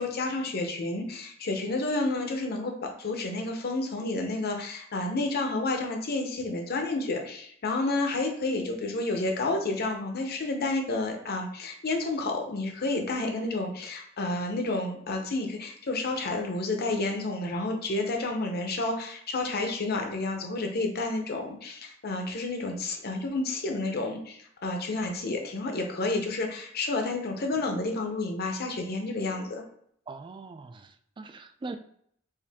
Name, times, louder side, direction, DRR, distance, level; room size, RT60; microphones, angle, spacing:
voice 1, 0.0-29.6, left 2 dB, 50° left, 3 dB, 0.7 m, -30 dB
voice 2, 30.1-31.8, right 3 dB, 25° right, 8 dB, 0.3 m, -41 dB
4.6 x 2.6 x 3.5 m, 0.66 s
head